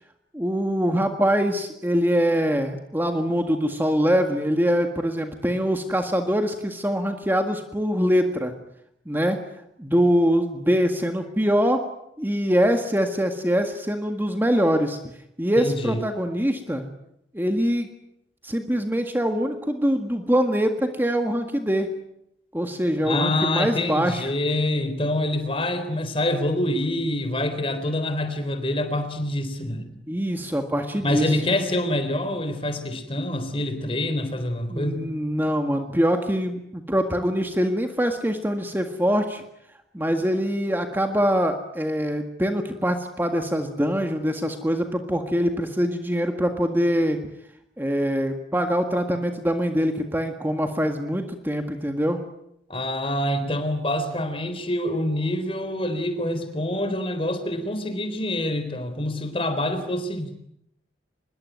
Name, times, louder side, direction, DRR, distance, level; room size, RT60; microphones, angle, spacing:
voice 1, 0.3-8.5 9.0-9.4 9.8-11.8 12.2-15.0 15.4-16.9 17.3-17.9 18.4-22.0 22.5-24.2 30.1-31.3 34.7-39.4 39.9-47.2 47.8-52.2, equal, 10° right, 5 dB, 1.7 m, -23 dB
voice 2, 15.6-16.0 23.0-30.0 31.0-35.1 52.7-60.4, left 1 dB, 30° left, 10 dB, 3.8 m, -26 dB
25.0 x 22.0 x 9.3 m, 0.78 s
head